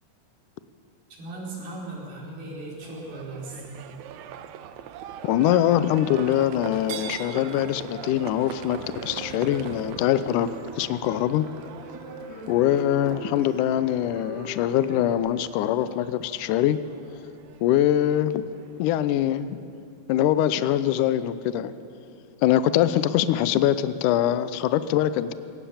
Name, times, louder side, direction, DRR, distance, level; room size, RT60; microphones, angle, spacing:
voice 1, 1.2-3.6, right 2 dB, 70° right, -3 dB, 6.0 m, -37 dB
Livestock farm animals working animals, 2.8-19.3, right 9 dB, 90° right, 1.6 m, -42 dB
voice 2, 5.2-10.5 10.8-11.5 12.5-16.8 17.6-18.5 18.8-19.6 20.1-21.7 22.4-25.3, left 11 dB, 90° left, 14 dB, 1.8 m, -23 dB
sound 1, 7.1-15.2, right 1 dB, 30° right, 3.5 m, -41 dB
22.0 x 19.0 x 7.2 m, 2.5 s
omnidirectional pair, 4.4 m